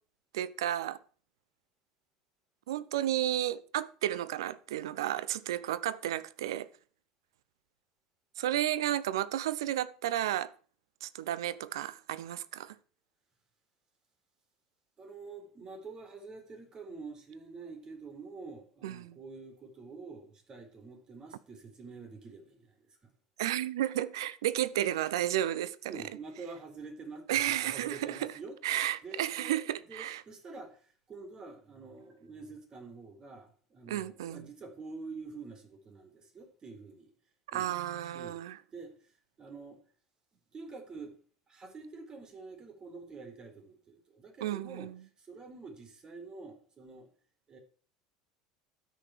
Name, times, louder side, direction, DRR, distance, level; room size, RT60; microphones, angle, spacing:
voice 1, 0.3-1.0 2.7-6.7 8.4-10.5 11.0-12.8 18.8-19.2 23.4-26.0 27.3-28.3 28.6-30.2 33.9-34.5 37.5-38.6 44.4-45.0, right 12 dB, 70° right, 0.7 m, -32 dB
voice 2, 15.0-23.1 25.9-28.6 29.0-29.6 29.9-37.1 37.5-38.4 38.7-39.8 40.5-41.2 41.5-44.9 45.2-47.1 47.5-47.6, right 4 dB, 30° right, 4.0 m, -47 dB
12.5 x 6.3 x 6.6 m
figure-of-eight pair, 70°, 3 cm